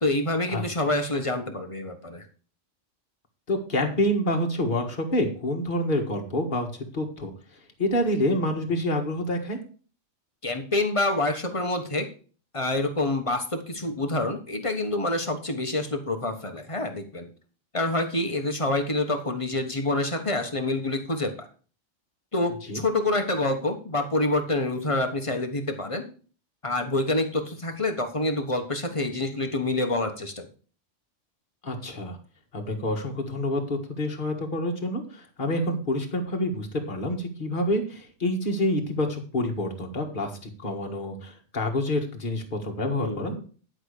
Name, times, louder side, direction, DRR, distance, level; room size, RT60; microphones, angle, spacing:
voice 1, 0.0-2.2 10.4-12.1 12.5-17.3 17.7-21.5 22.3-26.1 26.6-30.5 43.0-43.4, left 2 dB, 25° left, 5 dB, 1.3 m, -27 dB
voice 2, 3.5-6.7 6.9-7.3 7.8-9.6 22.7-22.8 31.6-32.2 32.5-43.5, left 1 dB, 45° left, 2 dB, 1.8 m, -27 dB
10.5 x 5.1 x 6.6 m, 0.40 s
omnidirectional pair, 1.3 m